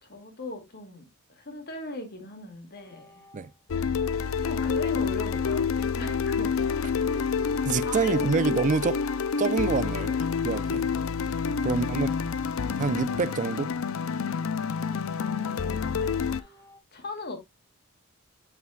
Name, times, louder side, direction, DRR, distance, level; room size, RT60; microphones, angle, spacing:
voice 1, 0.0-3.3 4.4-6.8 7.8-8.4 9.9-10.1 11.9-12.0 15.4-15.7 16.0-16.6 16.9-17.4, left 2 dB, 50° left, 2.1 m, -39 dB
sound 1, 2.8-3.8 4.2-5.0 5.5-6.6 7.2-8.0 8.5-9.8 10.2-11.0 11.5-12.6 13.2-14.1 14.6-15.9 16.3-16.8, equal, 15° left, 1.7 m, -56 dB
sound 2, 3.7-16.4, left 6 dB, 70° left, 0.5 m, -28 dB
voice 2, 7.6-9.0 9.4-10.1 10.4-10.9 11.6-12.1 12.8-13.7, right 4 dB, 35° right, 0.4 m, -26 dB
7.5 x 6.7 x 2.3 m
head